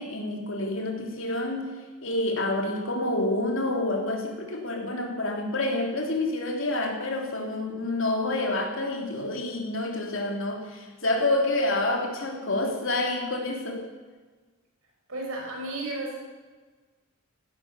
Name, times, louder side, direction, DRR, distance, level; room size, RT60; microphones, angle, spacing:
voice 1, 0.0-1.7 2.0-13.9, left 2 dB, 65° left, 1 dB, 3.3 m, -28 dB
voice 2, 15.1-16.2, right 2 dB, 75° right, -1 dB, 5.6 m, -34 dB
16.0 x 13.0 x 7.0 m, 1.3 s
head